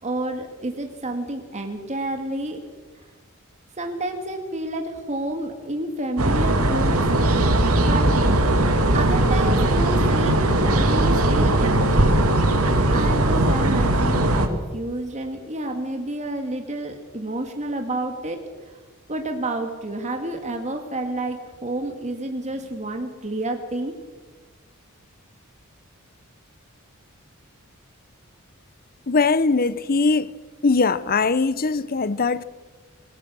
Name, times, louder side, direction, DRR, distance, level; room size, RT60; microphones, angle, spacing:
voice 1, 0.0-2.6 3.8-7.0 7.8-8.1 8.9-12.1 12.9-18.4 19.1-24.0, right 1 dB, 35° right, 2.0 m, -29 dB
sound 1, 6.2-14.5, right 1 dB, 85° right, 2.6 m, -19 dB
voice 2, 29.1-30.3 30.6-32.4, left 4 dB, 45° left, 0.8 m, -21 dB
26.5 x 20.5 x 6.3 m
head